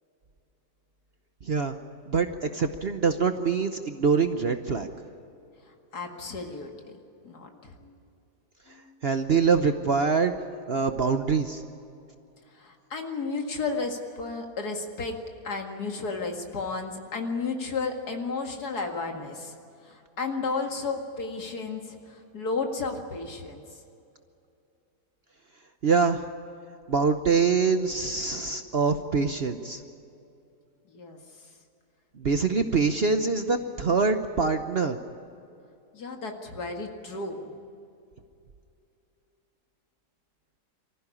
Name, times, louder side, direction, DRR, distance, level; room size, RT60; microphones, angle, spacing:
voice 1, 1.4-1.8 2.1-4.9 9.0-10.3 10.7-11.6 25.8-26.2 26.9-29.8 32.1-35.0, right 5 dB, 45° right, 7 dB, 0.9 m, -24 dB
voice 2, 5.9-7.0 7.2-7.9 8.7-9.0 12.5-15.2 15.4-19.6 19.8-23.6 30.9-31.2 35.9-37.5, left 4 dB, 70° left, 3 dB, 2.6 m, -33 dB
24.0 x 15.0 x 9.9 m, 2.6 s
omnidirectional pair, 1.8 m